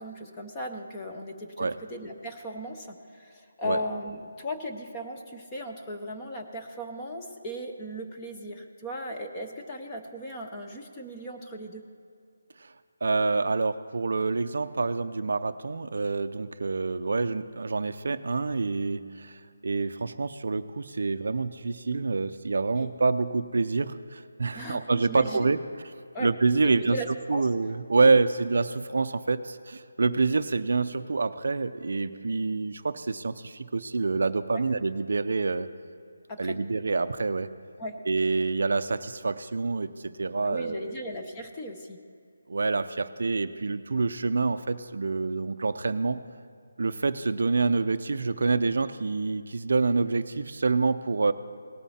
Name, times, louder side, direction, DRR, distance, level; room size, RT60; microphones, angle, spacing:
voice 1, 0.0-11.8 22.8-22.9 24.5-25.5 26.1-26.3 26.8-27.5 28.0-28.1 34.5-34.6 36.3-36.6 37.8-38.0 40.4-42.0, equal, 10° left, 1 dB, 0.6 m, -37 dB
voice 2, 13.0-25.6 26.2-27.0 27.3-35.7 36.4-37.5 38.1-40.9 42.5-46.2 46.8-51.3, right 3 dB, 50° right, 12 dB, 0.4 m, -27 dB
18.5 x 7.2 x 4.2 m, 2.4 s
hypercardioid pair, 180°, 0 cm